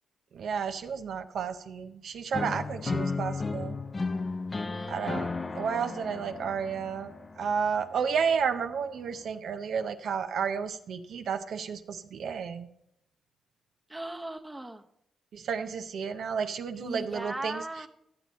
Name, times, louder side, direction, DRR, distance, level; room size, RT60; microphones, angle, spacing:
voice 1, 0.3-3.8 4.9-5.3 5.5-12.7 15.3-17.6, right 6 dB, 70° right, 7 dB, 0.6 m, -32 dB
sound 1, 2.3-8.3, left 3 dB, 35° left, 0.6 m, -34 dB
voice 2, 4.7-5.2 13.9-14.8 16.8-17.9, right 1 dB, 10° right, 4 dB, 0.8 m, -38 dB
12.0 x 7.6 x 4.1 m, 0.76 s
cardioid pair, 80°, 0 cm